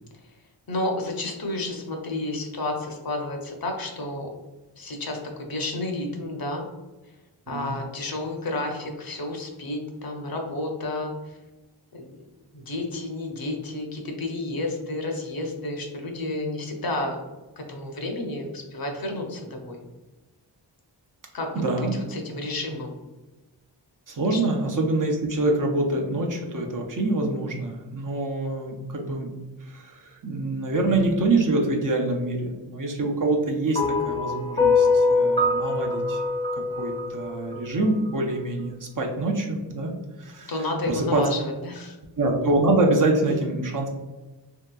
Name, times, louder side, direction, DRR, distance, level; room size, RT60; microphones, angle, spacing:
voice 1, 0.7-4.3 4.8-6.6 7.5-11.4 11.9-12.1 12.5-17.2 17.6-19.8 21.3-21.5 21.8-22.9 24.3-24.4 40.5-42.0, left 2 dB, 55° left, 2 dB, 0.6 m, -31 dB
voice 2, 7.5-7.8 21.5-22.0 24.1-29.3 29.7-36.2 36.5-39.9 40.2-40.5 40.9-41.3 42.2-43.9, right 2 dB, 45° right, 0 dB, 0.6 m, -25 dB
sound 1, 33.7-38.1, left 3 dB, 15° left, 0.5 m, -23 dB
3.4 x 2.8 x 2.3 m, 1.1 s
wide cardioid pair, 100°, 43 cm